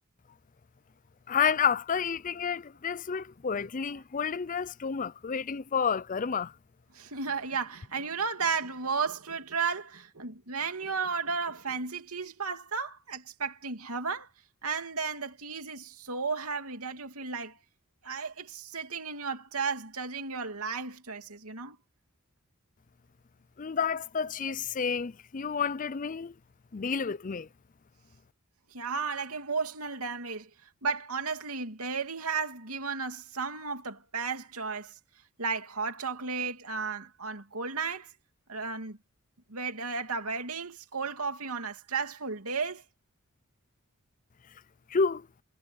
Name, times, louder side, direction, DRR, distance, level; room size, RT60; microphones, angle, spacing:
voice 1, 1.3-6.5 23.6-26.3 26.7-27.5 44.9-45.3, left 6 dB, 35° left, 0.5 m, -30 dB
voice 2, 6.9-14.3 14.6-17.6 18.0-21.8 28.7-30.5 30.8-34.9 35.4-38.1 38.5-39.0 39.5-42.8, right 5 dB, 90° right, 2.8 m, -34 dB
head